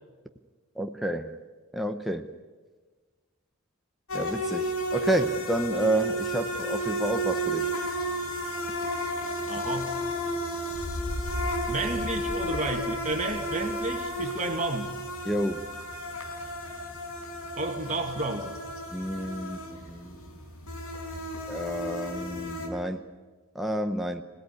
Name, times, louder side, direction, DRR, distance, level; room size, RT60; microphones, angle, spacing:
voice 1, 0.8-1.4 1.7-2.3 4.1-7.7 15.2-15.6 18.9-20.2 21.5-23.0 23.5-24.2, right 1 dB, ahead, 0.8 m, -30 dB
sound 1, 4.1-22.7, equal, 75° left, 5.0 m, -33 dB
voice 2, 9.4-9.9 11.6-14.9 17.6-18.6, right 2 dB, 35° right, 2.1 m, -31 dB
sound 2, 10.7-14.6, left 1 dB, 20° left, 4.4 m, -37 dB
26.0 x 18.5 x 9.8 m
head